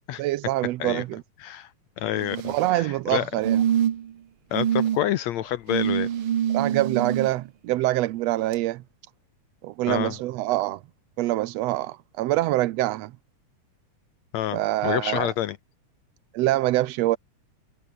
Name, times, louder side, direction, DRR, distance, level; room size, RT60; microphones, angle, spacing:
voice 1, 0.2-1.2 2.5-3.6 6.5-8.8 9.6-10.8 11.2-13.1 14.5-15.3 16.3-17.2, right 16 dB, 85° right, 1.5 m, -25 dB
voice 2, 2.0-3.3 4.5-6.1 9.9-10.2 14.3-15.6, left 12 dB, 70° left, 1.8 m, -28 dB
sound 1, 2.2-2.7 3.4-4.1 4.5-5.0 5.7-7.3 8.5-8.6, right 10 dB, 55° right, 1.6 m, -25 dB
omnidirectional pair, 3.7 m